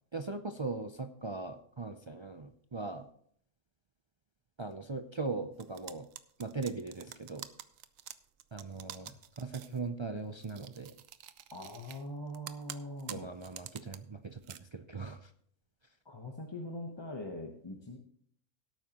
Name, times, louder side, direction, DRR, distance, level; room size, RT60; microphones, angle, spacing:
voice 1, 0.1-3.1 4.6-6.1 6.4-7.5 8.5-11.0 13.1-15.3, right 3 dB, 45° right, 6 dB, 0.3 m, -39 dB
sound 1, 5.6-9.8 10.4-12.0 12.3-14.0 14.3-14.6, right 11 dB, 80° right, 1.0 m, -47 dB
voice 2, 11.5-13.3 16.0-18.0, left 1 dB, 20° left, 1 dB, 1.0 m, -42 dB
17.0 x 8.9 x 3.0 m, 0.63 s
omnidirectional pair, 1.4 m